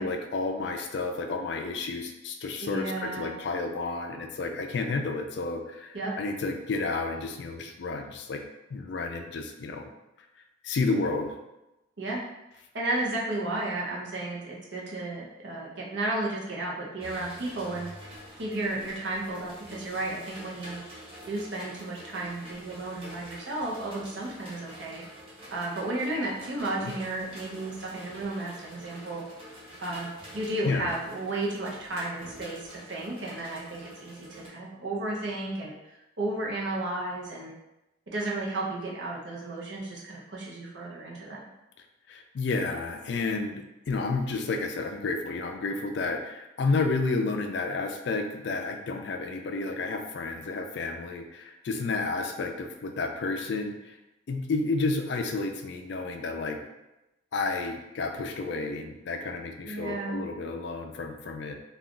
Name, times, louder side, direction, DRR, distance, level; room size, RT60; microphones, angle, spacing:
voice 1, 0.0-8.4 8.7-9.9 10.6-11.3 26.8-26.9 30.6-30.9 42.1-54.0 54.3-56.6 57.3-61.5, left 3 dB, 60° left, 5 dB, 0.3 m, -31 dB
voice 2, 2.6-3.3 5.9-6.1 12.0-12.2 12.7-17.9 18.4-20.8 21.3-25.0 25.5-29.2 29.8-35.7 36.2-37.5 38.1-41.5 59.6-60.2, right 2 dB, 65° right, -3 dB, 0.7 m, -33 dB
sound 1, 17.0-34.5, equal, 30° right, 0.6 m, -47 dB
2.4 x 2.3 x 3.6 m, 0.95 s
head